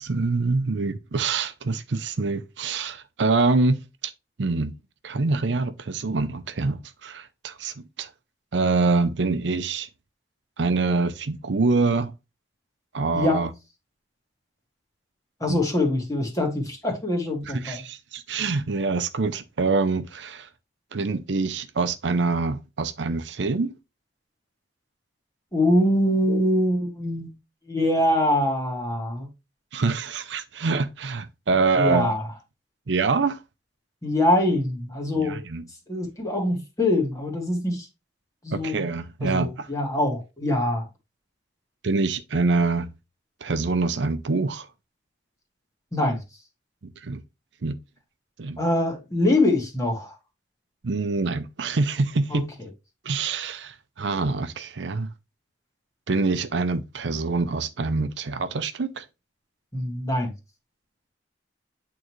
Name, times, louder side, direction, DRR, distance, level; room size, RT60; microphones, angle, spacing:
voice 1, 0.0-3.8 4.0-4.1 4.4-4.7 5.0-8.1 8.5-9.9 10.6-12.1 12.9-13.5 15.5-15.6 17.6-20.5 20.9-23.7 29.7-32.1 32.9-33.4 35.1-35.6 38.5-39.7 41.8-42.9 43.4-44.7 47.0-47.2 47.6-47.8 48.4-48.6 50.8-52.5 53.0-55.1 56.1-59.0, right 3 dB, 75° right, 0.6 m, -25 dB
voice 2, 15.4-17.8 25.5-27.3 27.7-29.3 31.8-32.3 34.0-35.4 35.9-37.9 38.4-38.8 39.2-40.9 45.9-46.2 48.6-50.1 52.3-52.7 59.7-60.3, left 1 dB, 20° left, 1.9 m, -24 dB
8.7 x 3.8 x 3.1 m
head